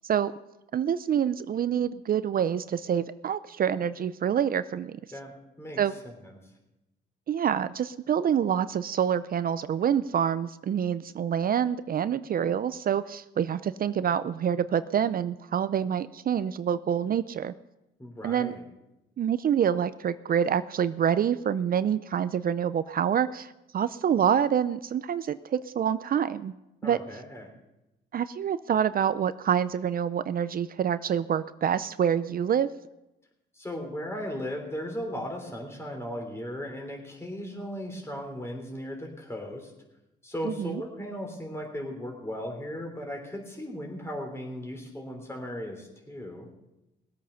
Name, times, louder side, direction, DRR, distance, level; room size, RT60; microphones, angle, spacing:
voice 1, 0.7-5.0 5.8-5.9 7.3-17.5 18.2-18.5 19.2-26.5 26.8-27.0 28.1-32.7 40.4-40.8, right 8 dB, 45° right, 14 dB, 0.5 m, -27 dB
voice 2, 5.1-5.8 6.2-6.4 18.0-18.6 26.8-27.5 33.5-39.7 40.2-46.5, equal, 15° left, 1 dB, 3.3 m, -37 dB
19.5 x 8.4 x 5.6 m, 0.93 s
cardioid pair, 90°, 20 cm